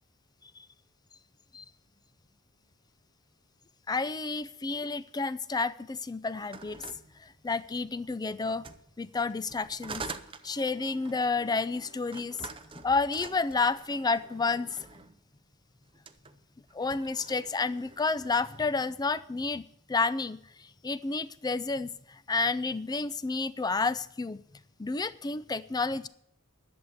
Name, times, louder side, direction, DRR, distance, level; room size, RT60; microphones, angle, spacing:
voice 1, 3.9-6.8 7.2-8.7 9.0-10.0 10.4-12.5 12.8-14.9 16.7-20.4 20.8-24.4 24.8-26.1, left 4 dB, 20° left, 15 dB, 0.4 m, -30 dB
sound 1, 6.3-7.9 8.5-15.2 15.9-16.3 16.7-18.7, right 4 dB, 25° right, 0.6 m, -46 dB
11.0 x 7.1 x 8.2 m, 0.69 s
head